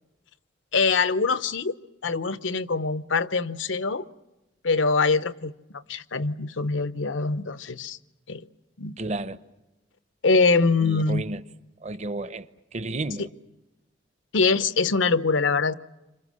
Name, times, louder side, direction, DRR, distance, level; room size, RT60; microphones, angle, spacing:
voice 1, 0.7-1.7 2.0-4.0 4.6-5.5 5.9-8.0 8.3-8.4 8.8-9.0 10.2-11.2 14.3-15.7, left 4 dB, 85° left, 0.9 m, -23 dB
voice 2, 9.0-9.4 10.8-11.4 11.8-12.5 12.7-13.3, right 2 dB, 35° right, 0.8 m, -32 dB
28.5 x 26.5 x 6.3 m
head